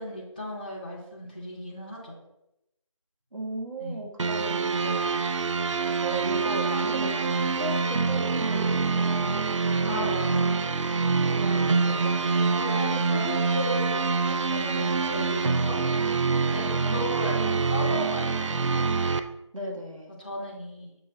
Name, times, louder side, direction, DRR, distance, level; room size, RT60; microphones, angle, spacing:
voice 1, 0.0-2.1 3.8-4.0 9.9-10.6 12.5-15.8 16.5-18.9 20.2-20.9, left 1 dB, 15° left, -6 dB, 0.5 m, -35 dB
voice 2, 3.3-5.0 6.0-10.2 11.2-13.3 16.6-17.5 19.5-20.2, right 2 dB, 90° right, 0 dB, 1.3 m, -37 dB
sound 1, 4.2-19.2, right 4 dB, 70° right, 0.4 m, -25 dB
6.7 x 2.4 x 3.2 m, 0.87 s
figure-of-eight pair, 170°, 16 cm